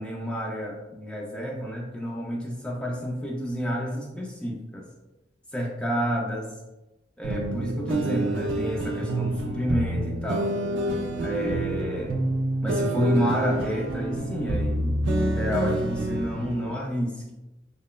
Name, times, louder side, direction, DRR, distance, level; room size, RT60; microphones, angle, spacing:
voice 1, 0.0-4.9 5.5-6.5 7.2-10.5 11.2-12.2 12.6-17.3, equal, 5° left, -2 dB, 0.3 m, -29 dB
sound 1, 7.2-16.7, right 1 dB, 70° right, 0.3 m, -28 dB
2.9 x 2.0 x 2.2 m, 1.0 s
head